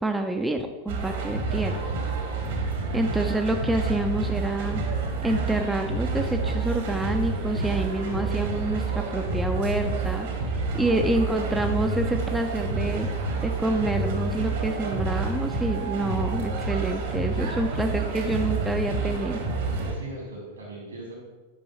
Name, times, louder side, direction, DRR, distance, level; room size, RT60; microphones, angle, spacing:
voice 1, 0.0-1.8 2.9-4.8 5.2-10.3 10.7-13.1 13.4-19.4, right 1 dB, 5° right, 4 dB, 0.4 m, -27 dB
sound 1, 0.9-19.9, right 4 dB, 55° right, 1.3 m, -28 dB
voice 2, 2.7-3.3 19.8-21.2, right 2 dB, 75° right, -2 dB, 2.4 m, -41 dB
8.6 x 5.3 x 3.0 m, 1.2 s
figure-of-eight pair, 90°, 0 cm